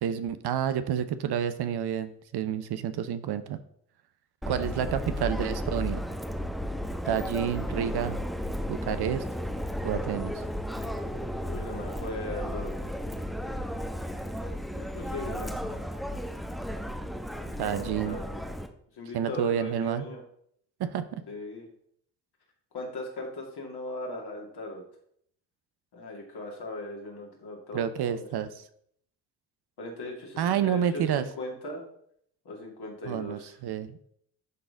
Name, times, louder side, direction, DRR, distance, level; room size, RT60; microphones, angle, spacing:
voice 1, 0.0-3.6 4.5-6.0 7.1-8.2 8.7-9.2 9.8-10.4 17.6-18.2 19.1-20.1 20.8-21.0 27.7-28.7 30.4-31.3 33.0-34.1, right 9 dB, 55° right, 11 dB, 0.8 m, -29 dB
Subway metro underground, 4.4-18.7, equal, ahead, 1.0 m, -34 dB
voice 2, 11.4-12.8 14.7-15.5 17.5-18.5 19.0-20.2 21.3-21.7 22.7-24.8 25.9-28.3 29.8-31.8 32.4-33.5, left 1 dB, 55° left, 0 dB, 2.4 m, -38 dB
11.0 x 4.0 x 3.8 m, 0.67 s
hypercardioid pair, 45°, 46 cm